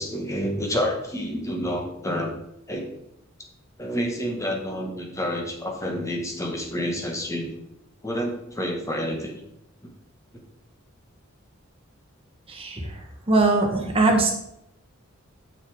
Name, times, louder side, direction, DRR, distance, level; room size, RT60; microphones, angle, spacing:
voice 1, 0.0-2.3 2.7-2.9 3.8-7.6 8.0-9.3 9.8-9.9, equal, 15° left, 1 dB, 1.4 m, -29 dB
voice 2, 12.5-12.8 13.3-14.3, right 2 dB, 25° right, 1 dB, 1.5 m, -20 dB
7.1 x 6.5 x 4.8 m, 0.80 s
head